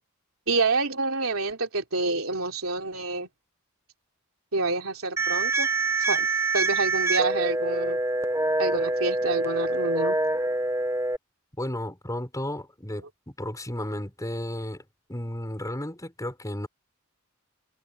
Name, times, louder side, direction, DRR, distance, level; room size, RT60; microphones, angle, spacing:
voice 1, 0.5-3.3 4.5-5.7 6.1-6.3 6.5-8.0 8.6-10.2, right 3 dB, 70° right, 3.6 m, -27 dB
sound 1, 5.2-11.2, right 2 dB, 15° right, 1.0 m, -25 dB
voice 2, 11.6-14.8 15.1-16.7, left 1 dB, 15° left, 6.6 m, -33 dB
head